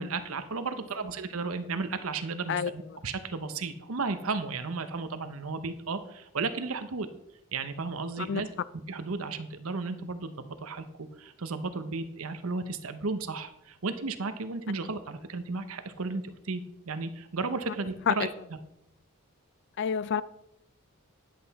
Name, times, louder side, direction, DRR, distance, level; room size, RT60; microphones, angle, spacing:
voice 1, 0.0-7.1 7.5-8.5 8.9-18.6, right 4 dB, 70° right, 0.9 m, -34 dB
voice 2, 19.8-20.2, left 7 dB, 55° left, 0.4 m, -28 dB
10.0 x 7.8 x 4.2 m
head